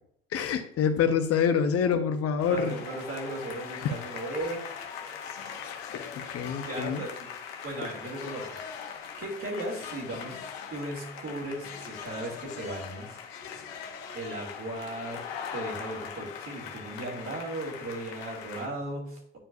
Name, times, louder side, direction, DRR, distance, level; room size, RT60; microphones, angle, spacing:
voice 1, 0.3-2.8 3.8-3.9 5.6-7.0, left 7 dB, 50° left, 8 dB, 0.9 m, -27 dB
sound 1, 2.4-18.7, left 7 dB, 80° left, 1.0 m, -41 dB
voice 2, 2.5-4.6 6.6-10.4 10.7-13.2 14.1-15.2 15.5-19.4, right 1 dB, 45° right, -1 dB, 2.8 m, -37 dB
9.9 x 4.6 x 2.6 m, 0.67 s
hypercardioid pair, 55°, 30 cm